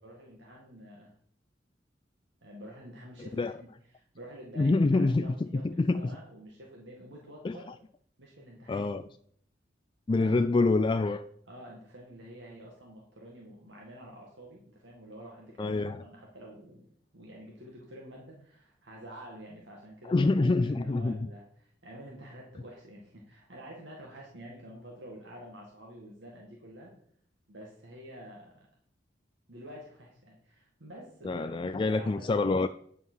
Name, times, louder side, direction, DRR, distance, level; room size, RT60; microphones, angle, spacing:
voice 1, 0.0-1.1 2.4-7.7 8.2-8.9 10.1-10.3 11.5-26.9 27.5-28.7 29.5-32.5, equal, 75° right, 2.1 m, -48 dB
voice 2, 4.6-6.0 7.4-7.6 8.7-9.0 10.1-11.2 15.6-16.0 20.0-21.2 31.2-32.7, left 3 dB, 25° left, 0.3 m, -26 dB
9.6 x 5.6 x 6.3 m
head